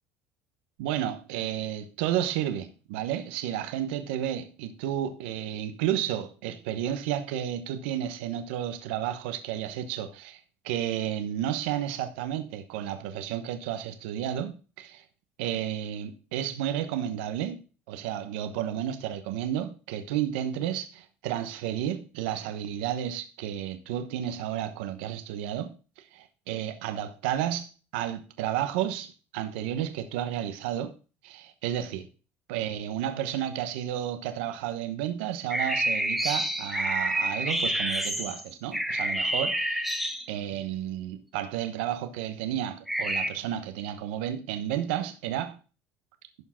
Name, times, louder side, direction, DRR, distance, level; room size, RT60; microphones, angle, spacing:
voice 1, 0.8-15.0 15.4-30.9 31.2-32.1 32.5-39.9 40.3-45.6, right 11 dB, 90° right, 1.0 m, -32 dB
sound 1, 35.5-40.5 42.9-43.3, right 1 dB, ahead, 1.3 m, -28 dB
12.0 x 4.7 x 5.7 m
supercardioid pair, 105°, 6 cm